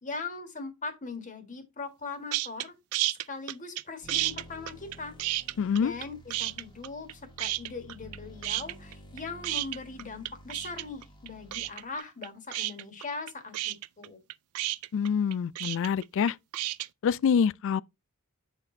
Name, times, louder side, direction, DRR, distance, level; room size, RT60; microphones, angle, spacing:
voice 1, 0.0-2.7 3.3-5.1 5.7-14.2, left 4 dB, 35° left, 1.5 m, -40 dB
sound 1, 2.3-2.7 2.9-3.8 4.1-6.1 6.3-7.1 7.4-8.2 8.4-16.9, right 17 dB, 85° right, 0.3 m, -31 dB
sound 2, 4.0-12.0, equal, 20° left, 1.4 m, -51 dB
voice 2, 5.6-5.9 14.9-16.4 17.0-17.8, left 7 dB, 60° left, 0.3 m, -26 dB
7.8 x 4.2 x 3.8 m
head